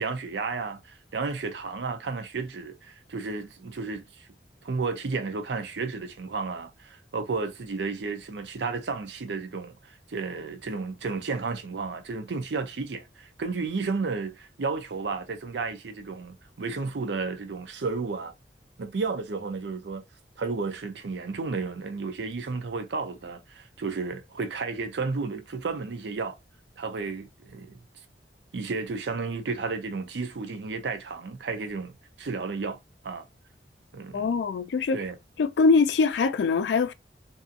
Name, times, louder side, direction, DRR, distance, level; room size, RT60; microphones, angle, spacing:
voice 1, 0.0-4.3 4.6-18.3 18.8-20.0 20.4-26.4 26.8-27.8 28.5-32.8 33.0-33.3 33.9-34.3 34.9-35.2, right 4 dB, 85° right, 0.5 m, -32 dB
voice 2, 34.1-35.0 35.4-36.9, left 4 dB, 85° left, 0.4 m, -23 dB
2.7 x 2.4 x 2.6 m
head